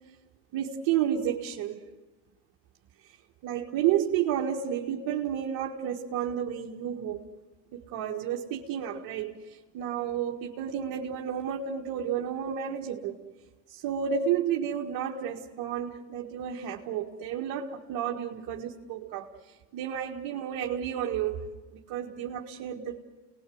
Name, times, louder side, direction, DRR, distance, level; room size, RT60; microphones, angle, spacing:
voice 1, 0.5-1.8 3.0-3.2 3.4-7.2 7.7-13.2 13.7-21.4 21.7-23.0, right 9 dB, 65° right, -1 dB, 2.0 m, -31 dB
29.0 x 20.0 x 7.9 m, 1.2 s
hypercardioid pair, 80°, 39 cm